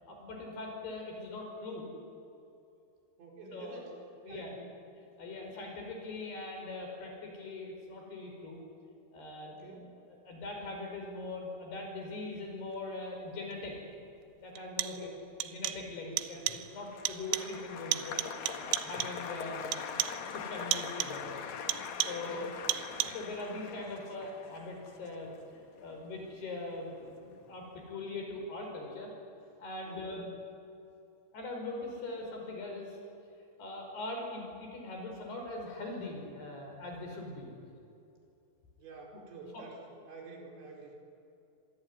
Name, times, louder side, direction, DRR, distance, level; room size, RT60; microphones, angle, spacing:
voice 1, 0.1-1.9 3.5-3.8 4.2-4.6 5.2-8.6 9.1-9.5 10.1-13.8 14.4-15.1 15.4-18.2 18.6-19.9 20.3-21.4 22.1-22.5 22.9-29.1 29.6-30.2 31.3-33.0 33.6-37.5 39.1-39.2 39.5-39.6, left 2 dB, 55° left, 2 dB, 7.1 m, -41 dB
voice 2, 3.2-4.0 4.2-4.6 5.2-5.5 9.5-9.9 14.8-15.2 22.1-22.5 29.8-30.3 38.8-41.0, right 3 dB, 65° right, -1 dB, 6.7 m, -49 dB
sound 1, 13.5-13.6 14.6-15.1 15.4-15.9 16.2-16.7 17.1-17.6 17.9-19.3 19.7-20.3 20.7-21.3 21.7-22.3 22.7-23.3, right 15 dB, 85° right, 3.5 m, -36 dB
Applause, 16.3-26.7 27.0-27.6, left 7 dB, 75° left, 1.6 m, -43 dB
25.5 x 24.0 x 9.7 m, 2.7 s
omnidirectional pair, 5.6 m